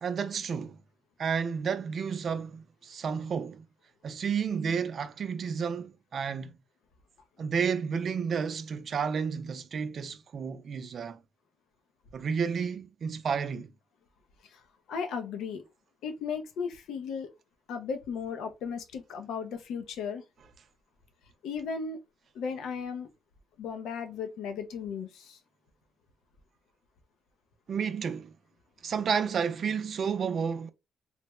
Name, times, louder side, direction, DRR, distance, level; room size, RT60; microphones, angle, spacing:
voice 1, 0.0-0.8 1.2-3.6 4.0-6.6 7.4-11.2 12.1-13.7 27.7-28.3 28.8-30.7, right 6 dB, 55° right, 0.4 m, -31 dB
voice 2, 14.9-15.6 16.0-17.3 17.7-20.2 21.4-22.0 22.3-23.1 23.6-25.4, left 6 dB, 80° left, 0.6 m, -35 dB
3.3 x 2.1 x 3.0 m
cardioid pair, 90°, 0 cm